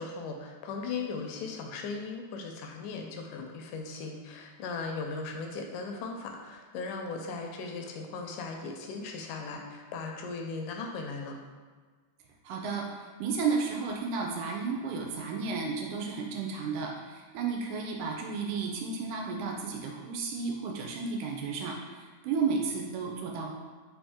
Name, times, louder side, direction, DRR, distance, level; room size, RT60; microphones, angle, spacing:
voice 1, 0.0-11.4, left 4 dB, 80° left, 2 dB, 2.0 m, -38 dB
voice 2, 12.4-23.5, right 5 dB, 80° right, 1 dB, 2.0 m, -33 dB
5.1 x 2.7 x 3.5 m, 1.5 s
omnidirectional pair, 3.6 m